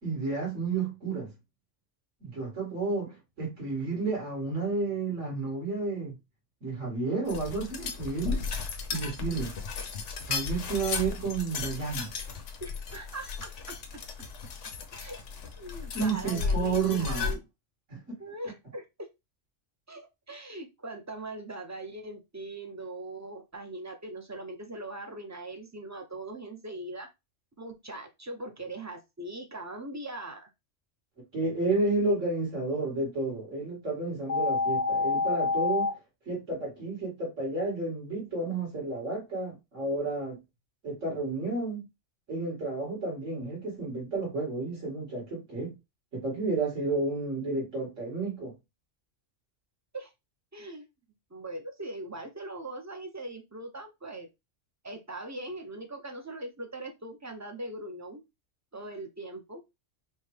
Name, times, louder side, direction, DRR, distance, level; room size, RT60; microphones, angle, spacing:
voice 1, 0.0-1.3 2.2-6.2 6.6-8.4 8.9-9.5 10.3-12.1 15.9-17.4 17.9-18.0 31.3-35.9 36.3-40.4 40.8-41.9 42.3-45.7 46.1-48.5, right 3 dB, 75° right, 2.8 m, -31 dB
sound 1, 7.3-17.3, left 5 dB, 75° left, 1.1 m, -35 dB
voice 2, 12.6-13.8 14.9-15.2 15.6-17.4 18.2-19.1 19.9-27.1 27.6-30.5 49.9-50.1 50.5-50.9 51.3-54.3 54.8-58.2 58.7-59.6, right 2 dB, 20° right, 0.4 m, -41 dB
sound 2, 34.3-35.9, left 3 dB, 15° left, 0.6 m, -27 dB
5.5 x 2.2 x 3.2 m
omnidirectional pair, 1.3 m